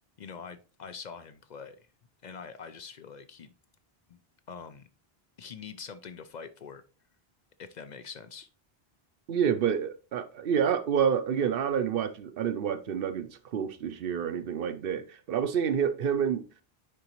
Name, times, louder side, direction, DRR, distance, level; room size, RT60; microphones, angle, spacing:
voice 1, 0.2-1.8 2.2-3.5 4.1-4.2 4.5-4.9 5.4-6.8 7.6-8.5, left 6 dB, 55° left, 0.6 m, -44 dB
voice 2, 9.3-16.4, right 8 dB, 65° right, 0.8 m, -28 dB
9.6 x 3.9 x 3.0 m
omnidirectional pair, 1.1 m